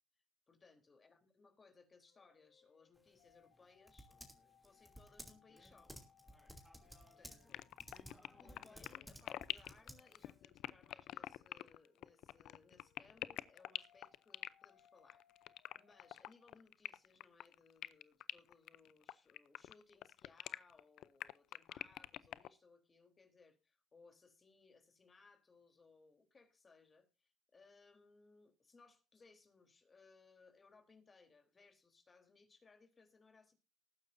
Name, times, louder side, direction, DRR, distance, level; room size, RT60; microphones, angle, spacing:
voice 1, 0.5-4.1 4.6-6.0 7.2-7.7 8.4-33.5, left 4 dB, 35° left, 6 dB, 3.6 m, -66 dB
sound 1, 2.1-16.4, left 8 dB, 90° left, 3.3 m, -72 dB
Typing, 2.9-10.4, equal, ahead, 2.8 m, -58 dB
sound 2, 7.5-22.5, left 13 dB, 70° left, 0.5 m, -46 dB
19.5 x 9.8 x 2.7 m, 0.28 s
supercardioid pair, 80°, 0 cm